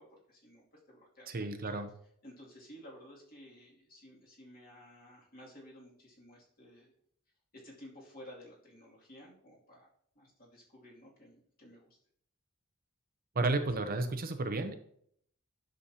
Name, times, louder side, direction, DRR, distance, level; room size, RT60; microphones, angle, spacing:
voice 1, 0.0-1.8 2.2-6.9 7.5-9.9 10.1-12.0, equal, 45° left, -4 dB, 2.5 m, -54 dB
voice 2, 1.3-1.9 13.3-14.8, right 2 dB, 45° right, 8 dB, 0.7 m, -32 dB
9.9 x 6.4 x 2.8 m, 0.67 s
head